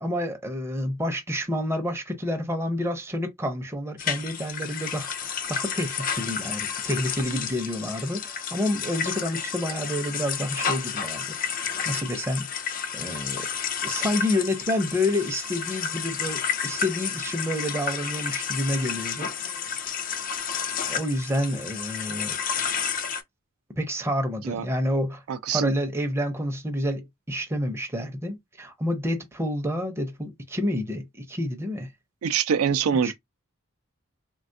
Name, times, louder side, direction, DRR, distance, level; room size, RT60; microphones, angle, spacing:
voice 1, 0.0-11.5 11.9-12.5 12.9-13.5 13.8-19.3 20.9-22.4 23.8-25.2 25.5-31.9 33.0-33.1, left 1 dB, 10° right, 0.5 m, -29 dB
sound 1, 4.0-23.2, left 7 dB, 40° left, 0.4 m, -31 dB
voice 2, 25.3-25.7 32.2-33.1, right 7 dB, 85° right, 0.4 m, -24 dB
3.3 x 2.2 x 2.6 m
head